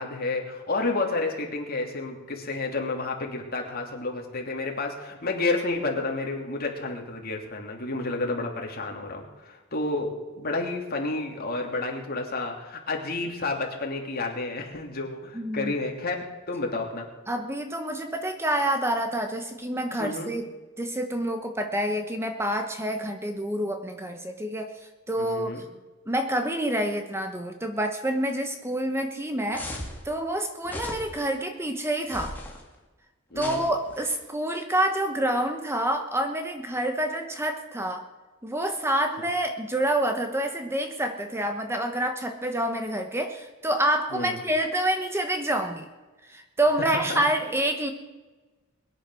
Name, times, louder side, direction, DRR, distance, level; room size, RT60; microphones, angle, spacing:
voice 1, 0.0-16.1 16.5-17.1 20.0-20.3 25.2-25.6 33.3-33.6 44.1-44.4 46.9-47.2, left 3 dB, 45° left, 1 dB, 2.9 m, -30 dB
voice 2, 15.3-15.7 17.3-20.5 20.8-25.5 26.1-29.7 30.0-32.4 33.4-38.0 38.4-45.9 46.3-47.9, right 1 dB, 10° right, 6 dB, 1.1 m, -27 dB
sound 1, 29.5-30.0 30.6-31.3 32.0-32.6 33.4-34.2, left 1 dB, 10° left, 2.4 m, -38 dB
22.0 x 10.0 x 6.3 m, 1.2 s
head